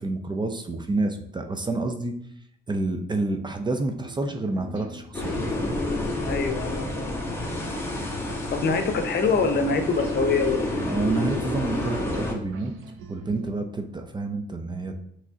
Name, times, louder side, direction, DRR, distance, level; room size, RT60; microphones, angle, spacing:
voice 1, 0.0-2.1 2.7-5.8 10.8-12.7 13.1-15.0, right 2 dB, 20° right, 5 dB, 0.5 m, -28 dB
sound 1, 3.9-13.5, right 5 dB, 80° right, 0.6 m, -42 dB
sound 2, 5.1-12.3, left 2 dB, 10° left, 1.0 m, -29 dB
voice 2, 6.2-7.3 8.3-10.8, left 4 dB, 55° left, 6 dB, 0.7 m, -25 dB
5.9 x 3.1 x 2.8 m, 0.69 s
cardioid pair, 90°, 20 cm